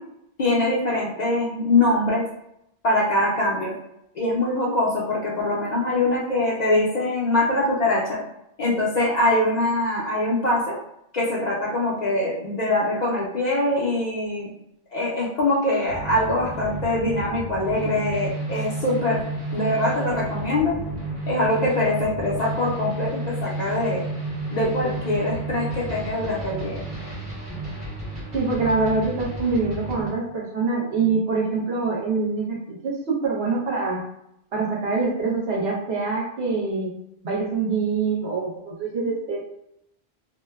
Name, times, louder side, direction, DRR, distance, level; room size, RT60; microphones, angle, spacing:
voice 1, 0.4-2.2 2.8-3.7 4.1-8.2 8.6-10.8 11.1-14.5 14.9-19.3 19.5-20.7 21.3-24.0 24.5-26.8, left 2 dB, 50° left, -5 dB, 0.6 m, -23 dB
sound 1, 15.9-30.1, right 2 dB, 50° right, 1.3 m, -31 dB
voice 2, 28.3-34.0 34.5-36.9 37.2-39.4, right 4 dB, 70° right, -3 dB, 1.0 m, -25 dB
2.8 x 2.2 x 2.2 m, 0.79 s
omnidirectional pair, 1.1 m